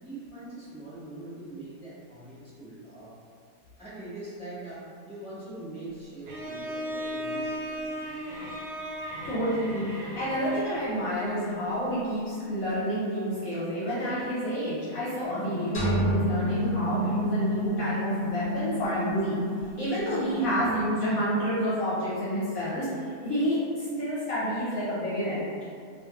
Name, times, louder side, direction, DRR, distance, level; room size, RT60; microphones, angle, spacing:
voice 1, 0.0-3.1 3.8-8.2, right 2 dB, 5° right, -12 dB, 0.7 m, -42 dB
Bowed string instrument, 6.3-11.1, equal, 75° right, 1.1 m, -36 dB
voice 2, 9.2-19.4 19.8-25.4, equal, 70° left, -9 dB, 0.9 m, -29 dB
sound 1, 15.2-20.9, equal, 85° left, 0.5 m, -31 dB
sound 2, 15.7-17.7, right 2 dB, 40° left, 0.8 m, -31 dB
2.4 x 2.4 x 2.7 m, 2.2 s
omnidirectional pair, 1.8 m